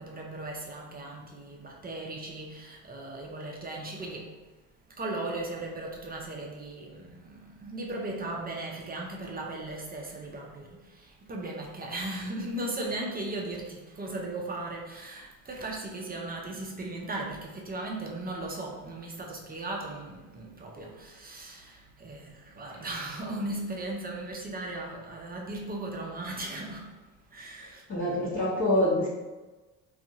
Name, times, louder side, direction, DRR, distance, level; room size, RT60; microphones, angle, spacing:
voice 1, 0.0-4.4 4.9-27.0 27.3-27.8, right 2 dB, 20° right, 0.4 m, -37 dB
voice 2, 27.9-29.1, left 1 dB, 30° left, 0.8 m, -25 dB
2.6 x 2.4 x 2.6 m
hypercardioid pair, 75°, 45 cm